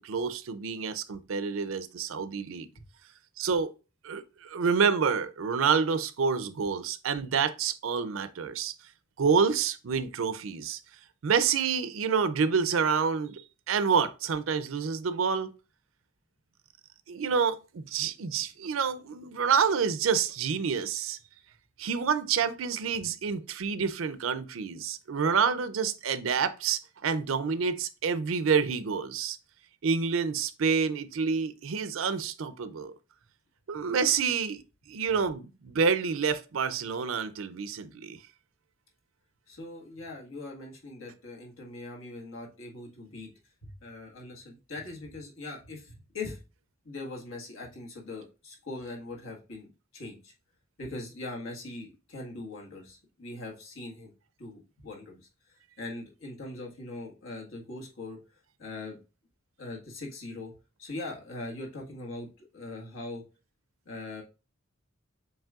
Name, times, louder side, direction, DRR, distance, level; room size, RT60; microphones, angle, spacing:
voice 1, 0.0-2.7 3.4-3.7 4.0-8.7 9.2-10.8 11.2-13.4 13.7-15.5 17.1-21.2 21.8-29.4 29.8-32.9 33.7-34.6 34.9-38.2, right 6 dB, 80° right, 0.5 m, -28 dB
voice 2, 39.5-43.3 43.6-46.4 46.9-50.3 50.8-54.1 54.4-58.2 58.6-59.0 59.6-60.5 60.8-63.2 63.9-64.2, left 2 dB, 80° left, 1.6 m, -41 dB
7.2 x 3.0 x 2.4 m
head